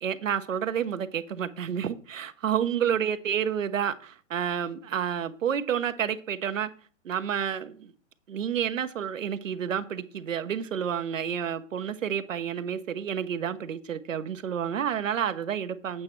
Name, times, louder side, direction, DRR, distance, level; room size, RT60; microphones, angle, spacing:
voice 1, 0.0-6.7 7.0-7.9 8.3-16.0, right 8 dB, 75° right, 1.1 m, -30 dB
8.7 x 7.2 x 4.5 m
hypercardioid pair, 130°, 39 cm